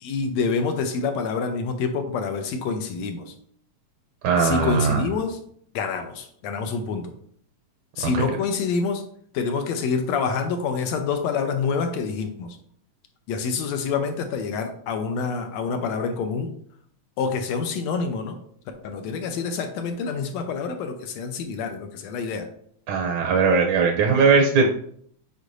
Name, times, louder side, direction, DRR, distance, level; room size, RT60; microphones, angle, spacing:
voice 1, 0.0-3.3 4.4-5.4 5.8-7.1 8.0-9.0 9.3-12.6 13.3-16.5 17.2-18.4 18.8-22.5 24.1-24.2, left 5 dB, 75° left, 6 dB, 1.8 m, -27 dB
voice 2, 4.2-5.0 8.1-8.2 22.9-24.7, right 4 dB, 80° right, 2 dB, 2.0 m, -19 dB
8.2 x 4.7 x 2.6 m, 0.64 s
omnidirectional pair, 3.3 m